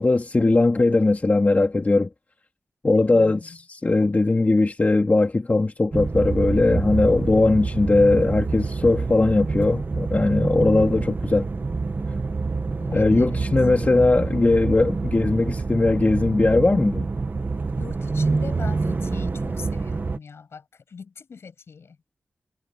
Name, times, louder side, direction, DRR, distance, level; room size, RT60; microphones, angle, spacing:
voice 1, 0.0-2.1 2.8-11.5 12.9-17.1, left 2 dB, 35° left, 2.3 m, -19 dB
voice 2, 3.1-3.6 12.8-13.4 17.8-22.0, left 5 dB, 75° left, 7.1 m, -41 dB
sound 1, 5.9-20.2, right 4 dB, 45° right, 1.2 m, -27 dB
cardioid pair, 50°, 4 cm